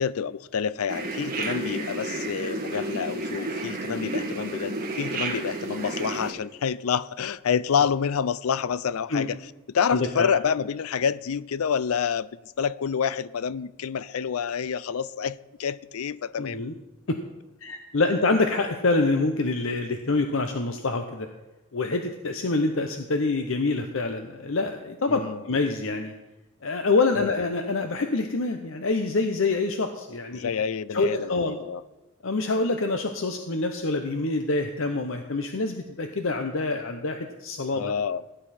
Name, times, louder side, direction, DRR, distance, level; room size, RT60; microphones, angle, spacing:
voice 1, 0.0-9.4 9.7-16.6 25.1-25.4 27.2-27.3 30.3-31.8 37.7-38.2, left 7 dB, 80° left, 0.4 m, -28 dB
sound 1, 0.9-6.3, right 2 dB, 40° right, 2.3 m, -31 dB
voice 2, 9.9-10.3 16.4-16.7 17.1-17.2 17.6-21.3 21.7-25.2 25.4-26.1 26.6-30.5 30.9-31.6 32.2-37.9, left 3 dB, 65° left, 0.8 m, -26 dB
17.0 x 10.0 x 4.3 m
head